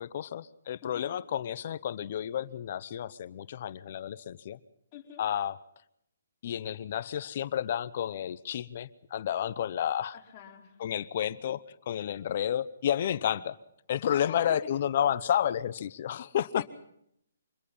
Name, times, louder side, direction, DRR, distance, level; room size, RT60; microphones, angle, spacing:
voice 1, 0.0-4.6 5.2-5.6 6.4-10.1 10.8-11.6 11.9-13.6 13.9-16.6, left 10 dB, 45° left, 15 dB, 0.8 m, -31 dB
voice 2, 4.9-5.2 10.1-10.8 14.1-14.6 16.6-16.7, left 10 dB, 25° left, -4 dB, 4.9 m, -46 dB
25.0 x 21.0 x 5.5 m, 0.74 s
hypercardioid pair, 150°, 0 cm